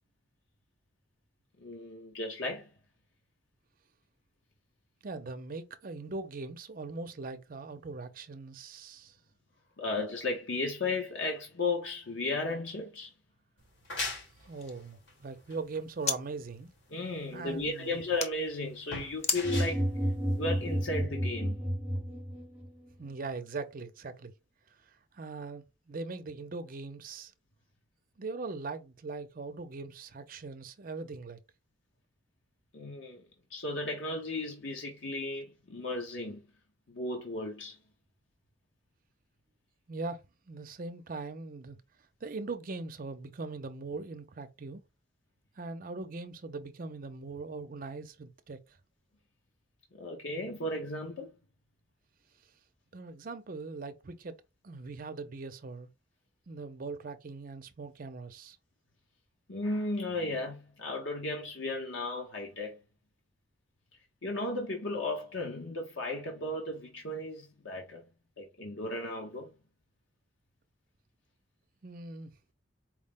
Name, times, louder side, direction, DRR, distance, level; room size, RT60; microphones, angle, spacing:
voice 1, 1.6-2.7 9.8-13.1 16.9-19.9 20.3-21.6 32.7-33.2 33.5-36.4 36.9-37.8 49.9-51.3 59.5-62.8 64.2-68.0 68.4-69.5, left 2 dB, 90° left, 0.9 m, -35 dB
voice 2, 5.0-9.1 14.5-16.7 17.3-18.1 23.0-24.3 25.1-27.3 28.2-31.4 39.9-41.8 42.2-44.8 45.6-48.6 52.9-54.4 54.6-55.9 56.5-58.6 71.8-72.3, right 3 dB, 50° right, 0.6 m, -40 dB
sound 1, 13.6-21.0, left 3 dB, 70° left, 1.5 m, -42 dB
sound 2, 14.1-16.2 16.5-18.3 19.2-19.4, left 5 dB, 35° left, 0.7 m, -38 dB
sound 3, 19.4-22.7, equal, 10° right, 1.0 m, -31 dB
4.7 x 2.1 x 3.6 m
head